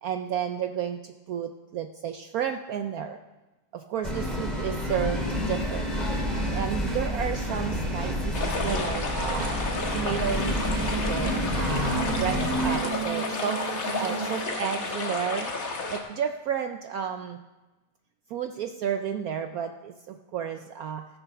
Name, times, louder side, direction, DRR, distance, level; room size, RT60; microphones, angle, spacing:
voice 1, 0.0-3.2 3.7-5.9 6.5-10.7 11.0-13.6 14.0-17.4 18.3-21.1, right 8 dB, 65° right, 6 dB, 1.0 m, -32 dB
sound 1, 4.0-12.7, equal, ahead, 2.6 m, -29 dB
sound 2, 8.3-16.0, left 3 dB, 55° left, 1.8 m, -32 dB
sound 3, 9.3-14.5, right 8 dB, 50° right, 0.5 m, -37 dB
14.5 x 7.8 x 5.9 m, 1.1 s
omnidirectional pair, 1.9 m